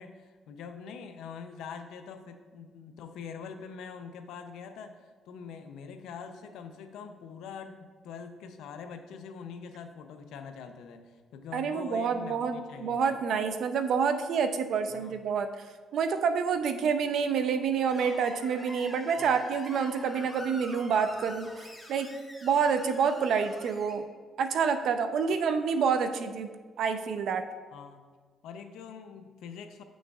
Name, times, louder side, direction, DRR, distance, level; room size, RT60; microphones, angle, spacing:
voice 1, 0.0-13.2 14.9-15.2 19.2-19.3 27.7-28.1 28.4-29.8, left 6 dB, 85° left, 7 dB, 0.5 m, -44 dB
voice 2, 11.5-15.6 15.9-22.1 22.4-24.0 24.4-26.5 26.8-27.5, right 6 dB, 70° right, 8 dB, 0.5 m, -28 dB
Screech, 17.9-23.9, left 1 dB, 10° left, 1.2 m, -46 dB
7.8 x 6.2 x 2.4 m, 1.5 s
cardioid pair, 90°, 0 cm